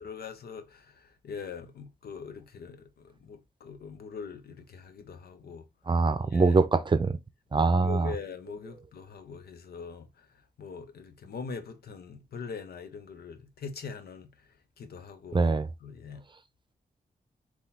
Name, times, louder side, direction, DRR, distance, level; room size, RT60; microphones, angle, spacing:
voice 1, 0.0-5.6 6.3-6.6 7.5-10.3 10.6-14.3 14.8-15.4 15.8-16.2, left 5 dB, 75° left, 0.8 m, -42 dB
voice 2, 5.9-7.1 7.5-8.1 15.3-15.7, right 3 dB, 30° right, 0.6 m, -23 dB
3.7 x 3.0 x 4.2 m
cardioid pair, 85°, 16 cm